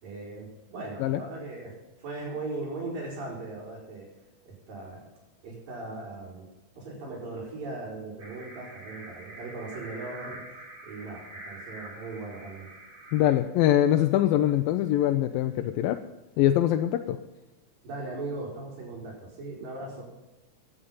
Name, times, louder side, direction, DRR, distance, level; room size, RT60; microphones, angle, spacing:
voice 1, 0.0-1.7 2.0-4.1 4.4-5.0 5.4-6.5 6.7-10.4 10.8-12.7 17.8-20.0, right 3 dB, 75° right, -8 dB, 6.1 m, -38 dB
sound 1, 8.2-13.4, right 1 dB, 50° right, 6.4 m, -45 dB
voice 2, 13.1-16.0 16.4-17.2, left 12 dB, 90° left, 7 dB, 2.4 m, -23 dB
16.5 x 10.0 x 5.5 m, 1.1 s
omnidirectional pair, 4.1 m